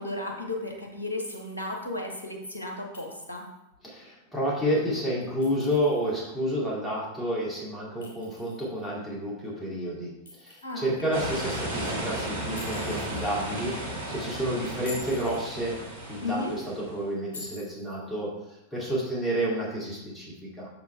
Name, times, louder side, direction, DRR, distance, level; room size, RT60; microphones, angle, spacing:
voice 1, 0.0-3.4 10.6-11.3 16.2-16.5, left 2 dB, 75° left, 1 dB, 1.2 m, -34 dB
Chink clink, 1.3-1.9 2.9-3.6 5.2-6.1 8.0-8.9 10.3-11.0 12.6-13.2 14.7-15.5 17.3-18.0, left 3 dB, 60° left, 2.4 m, -46 dB
voice 2, 3.8-10.1 10.4-15.7 16.1-20.7, equal, 10° left, -5 dB, 2.5 m, -30 dB
sound 1, 11.1-17.0, right 1 dB, 70° right, 1.8 m, -34 dB
6.8 x 5.8 x 3.3 m, 0.91 s
figure-of-eight pair, 90°, 0 cm